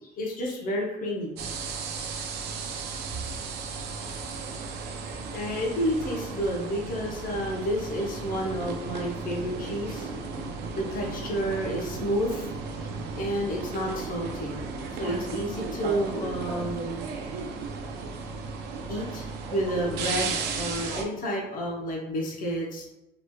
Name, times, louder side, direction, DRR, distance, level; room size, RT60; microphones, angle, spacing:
voice 1, 0.2-1.3 5.3-10.1 10.8-12.5 12.8-12.9 13.2-14.6 15.0-17.1 18.9-22.8, equal, 55° left, -1 dB, 0.8 m, -30 dB
sound 1, 1.4-21.0, right 4 dB, 80° right, 0.5 m, -35 dB
3.0 x 2.9 x 2.3 m, 0.95 s
cardioid pair, 110°, 17 cm